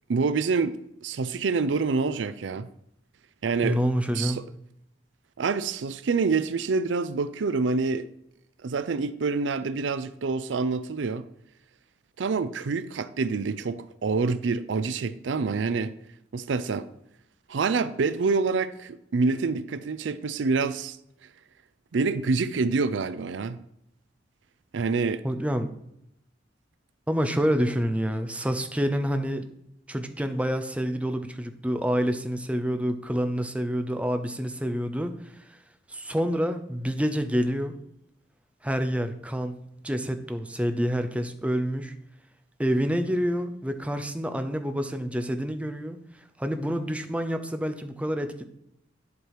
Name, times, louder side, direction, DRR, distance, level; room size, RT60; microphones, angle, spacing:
voice 1, 0.1-0.8 1.0-2.7 3.4-3.8 4.1-4.4 5.4-8.1 8.6-11.2 12.2-15.9 16.3-16.9 17.5-21.0 21.9-23.6 24.7-25.2, right 4 dB, 75° right, 0.5 m, -26 dB
voice 2, 3.6-4.4 25.2-25.7 27.1-29.5 29.9-35.2 35.9-37.7 38.6-41.9 42.6-46.0 46.4-48.4, equal, 5° right, 0.7 m, -27 dB
11.0 x 4.6 x 4.9 m
head